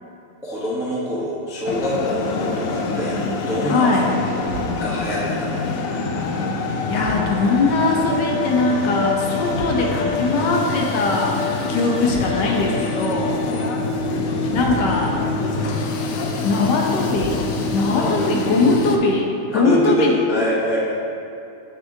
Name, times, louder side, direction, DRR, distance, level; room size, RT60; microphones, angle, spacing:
voice 1, 0.4-3.9 4.2-4.3 4.8-5.5 13.5-13.7 17.9-18.2 19.5-20.9, left 1 dB, 5° right, -6 dB, 0.3 m, -24 dB
sound 1, 1.7-19.0, left 3 dB, 90° left, 0.7 m, -25 dB
voice 2, 3.6-4.1 6.9-13.4 14.5-15.2 16.4-17.4 17.7-20.1, left 3 dB, 70° left, 0 dB, 1.4 m, -21 dB
sound 2, 4.5-5.0 7.0-7.6 9.5-10.1 12.1-12.7 14.6-15.2 17.1-17.7, right 5 dB, 85° right, 1.4 m, -33 dB
6.9 x 6.4 x 2.7 m, 2.7 s
omnidirectional pair, 2.0 m